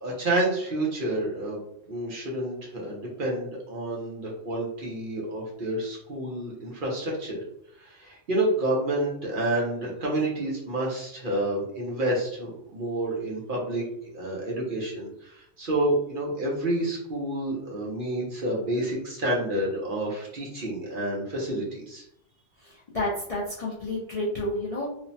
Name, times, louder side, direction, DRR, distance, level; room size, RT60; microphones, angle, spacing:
voice 1, 0.0-1.6 1.9-7.4 7.8-13.8 14.1-22.0, right 1 dB, 50° right, -3 dB, 0.8 m, -29 dB
voice 2, 22.6-24.9, left 1 dB, 50° left, -6 dB, 0.4 m, -30 dB
3.1 x 2.0 x 2.6 m, 0.75 s
omnidirectional pair, 1.3 m